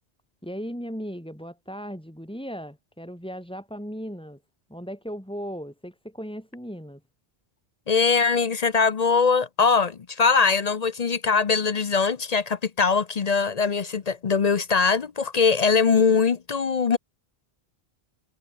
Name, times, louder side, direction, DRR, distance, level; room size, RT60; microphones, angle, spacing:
voice 1, 0.4-4.4 4.7-7.0, equal, 5° left, 6.9 m, -37 dB
voice 2, 7.9-17.0, left 5 dB, 45° left, 0.7 m, -22 dB
omnidirectional pair, 1.1 m